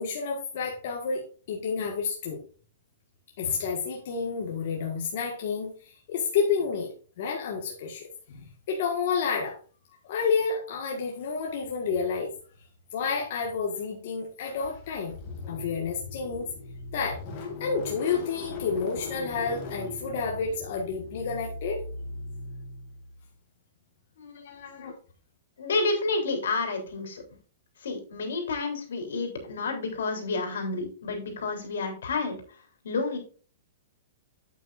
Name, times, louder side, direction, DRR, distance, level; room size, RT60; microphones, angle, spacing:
voice 1, 0.0-2.4 3.4-9.6 10.0-12.3 12.9-15.2 15.5-16.5 16.9-21.8 24.4-24.9, left 5 dB, 45° left, 0 dB, 1.7 m, -30 dB
Car / Engine starting, 14.5-23.2, left 3 dB, 30° left, 2.2 m, -39 dB
voice 2, 24.2-24.8 25.6-27.2 27.8-32.4 32.8-33.2, left 3 dB, 80° left, 4 dB, 3.6 m, -30 dB
9.0 x 8.6 x 2.6 m, 0.37 s
hypercardioid pair, 175°, 0 cm